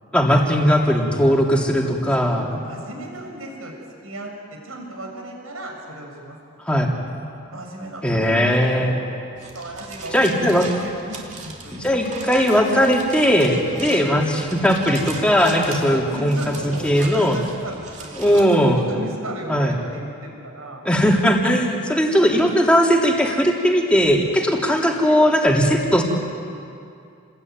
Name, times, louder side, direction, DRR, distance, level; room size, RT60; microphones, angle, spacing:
voice 1, 0.1-2.5 6.6-6.9 8.0-8.9 10.1-10.6 11.7-17.4 18.2-18.8 19.5-19.8 20.8-26.0, equal, 5° left, -1 dB, 3.1 m, -18 dB
voice 2, 1.8-3.7 4.0-6.4 7.5-9.0 9.5-11.9 13.7-13.9 15.9-20.8 22.2-22.6 24.9-25.1, right 1 dB, 80° right, 1 dB, 6.7 m, -36 dB
sound 1, 9.3-18.5, right 3 dB, 35° right, 3.1 m, -38 dB
29.5 x 21.0 x 9.6 m, 2.5 s
head